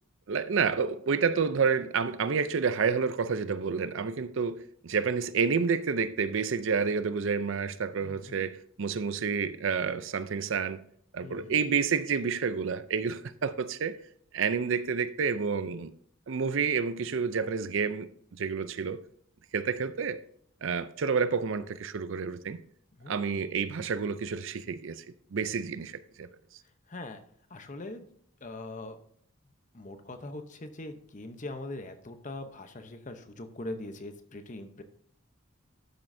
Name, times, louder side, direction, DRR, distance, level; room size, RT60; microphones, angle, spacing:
voice 1, 0.3-10.8 11.1-14.0 14.3-15.9 16.3-19.0 19.5-20.2 20.6-22.6 23.1-25.0 25.3-26.3, right 5 dB, 65° right, 0.5 m, -29 dB
voice 2, 8.0-8.5 11.2-11.6 23.0-23.1 26.9-27.2 27.5-28.0 28.4-29.0 29.7-34.8, left 2 dB, 35° left, 0.8 m, -41 dB
12.5 x 7.5 x 2.7 m
head